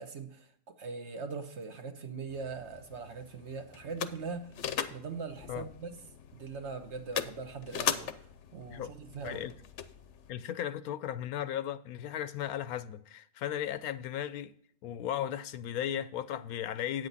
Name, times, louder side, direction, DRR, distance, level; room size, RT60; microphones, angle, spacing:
voice 1, 0.0-4.5 4.8-6.0 6.3-8.3 8.5-9.5, right 5 dB, 55° right, 1.2 m, -41 dB
sound 1, 2.3-10.3, left 8 dB, 60° left, 0.9 m, -40 dB
voice 2, 10.3-14.5 14.8-17.1, left 10 dB, 85° left, 1.1 m, -36 dB
9.0 x 8.1 x 4.0 m
omnidirectional pair, 1.5 m